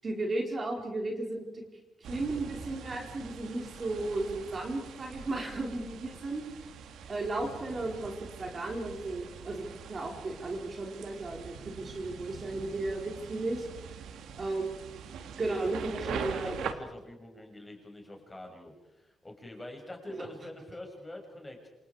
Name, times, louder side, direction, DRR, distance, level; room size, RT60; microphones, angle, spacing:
voice 1, 0.0-1.6 2.1-6.4 7.1-8.1 8.4-13.6 14.4-15.0 15.4-16.6 20.1-20.3, right 2 dB, 35° right, 1 dB, 4.5 m, -34 dB
sound 1, 2.0-16.7, right 7 dB, 90° right, 2.5 m, -43 dB
voice 2, 15.6-21.7, left 1 dB, 15° left, 2 dB, 6.7 m, -45 dB
28.5 x 27.5 x 5.0 m, 0.96 s
cardioid pair, 125°, 0 cm